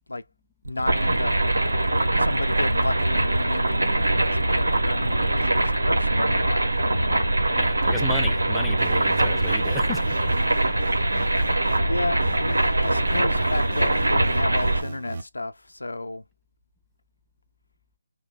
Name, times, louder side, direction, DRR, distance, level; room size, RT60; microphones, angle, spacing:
voice 1, 0.6-1.3 2.2-7.2 11.9-16.2, left 2 dB, 85° left, 0.5 m, -32 dB
sound 1, 0.6-5.8, right 2 dB, 70° right, 0.4 m, -35 dB
sound 2, 0.9-14.8, right 1 dB, 85° right, 0.9 m, -22 dB
voice 2, 7.6-10.0, left 1 dB, ahead, 0.4 m, -33 dB
sound 3, 8.8-11.8 12.2-15.2, right 3 dB, 50° right, 0.9 m, -38 dB
3.0 x 2.2 x 3.9 m
figure-of-eight pair, 150°, 0 cm